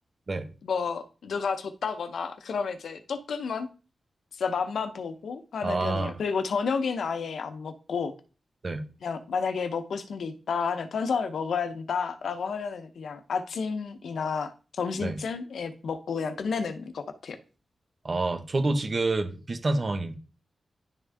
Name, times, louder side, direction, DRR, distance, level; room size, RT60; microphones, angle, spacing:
voice 1, 0.6-3.7 4.4-8.1 9.0-14.5 14.8-17.4, left 5 dB, 85° left, 0.8 m, -31 dB
voice 2, 5.6-6.2 8.6-8.8 15.0-15.2 18.0-20.1, right 2 dB, 40° right, 1.1 m, -28 dB
11.0 x 3.6 x 3.5 m
wide cardioid pair, 100°, 0 cm